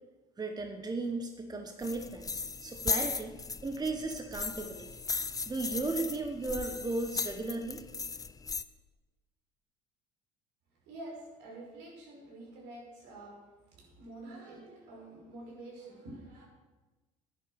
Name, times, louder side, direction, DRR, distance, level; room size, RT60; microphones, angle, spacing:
voice 1, 0.4-3.4 3.6-4.9 5.5-7.8, right 3 dB, 20° right, 5 dB, 1.2 m, -35 dB
sound 1, 1.8-8.6, left 4 dB, 20° left, 0.6 m, -37 dB
voice 2, 10.9-13.4 13.7-16.4, right 2 dB, 70° right, -1 dB, 5.3 m, -47 dB
11.0 x 10.5 x 6.6 m, 1.2 s
hypercardioid pair, 70°, 19 cm